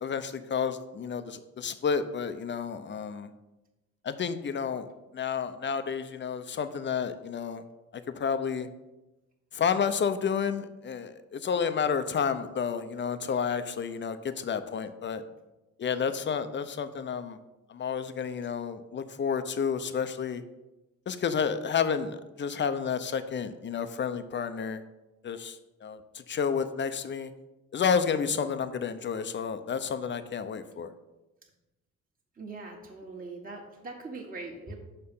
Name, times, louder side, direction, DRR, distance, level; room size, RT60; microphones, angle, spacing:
voice 1, 0.0-3.3 4.0-4.9 5.1-7.6 7.9-8.7 9.5-15.2 15.8-17.4 17.7-20.4 21.1-24.8 25.2-27.3 27.7-30.9, left 6 dB, 40° left, 11 dB, 0.7 m, -30 dB
voice 2, 32.3-34.8, right 3 dB, 30° right, -1 dB, 1.6 m, -41 dB
6.7 x 5.6 x 5.5 m, 1.0 s
cardioid pair, 90°, 30 cm